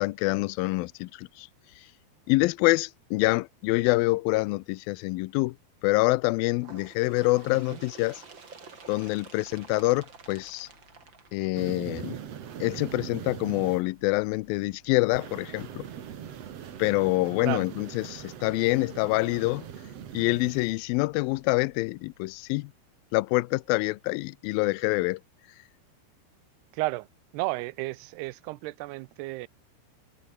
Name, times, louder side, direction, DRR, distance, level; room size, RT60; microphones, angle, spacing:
voice 1, 0.0-1.5 2.3-5.6 5.8-8.2 8.9-10.7 11.3-12.2 12.6-15.9 16.8-19.6 20.1-22.7 23.1-25.2, left 22 dB, 85° left, 2.1 m, -26 dB
Bird, 6.6-12.0 12.9-13.0 13.4-13.5 14.4-14.5 15.4-15.5 16.4-16.5, right 4 dB, 30° right, 3.4 m, -49 dB
sound 1, 9.4-22.5, left 3 dB, 30° left, 6.7 m, -61 dB
sound 2, 11.5-13.8 15.1-20.7, right 9 dB, 50° right, 2.1 m, -41 dB
voice 2, 26.7-27.1 27.3-29.5, right 20 dB, 85° right, 2.6 m, -33 dB
open air
omnidirectional pair, 4.8 m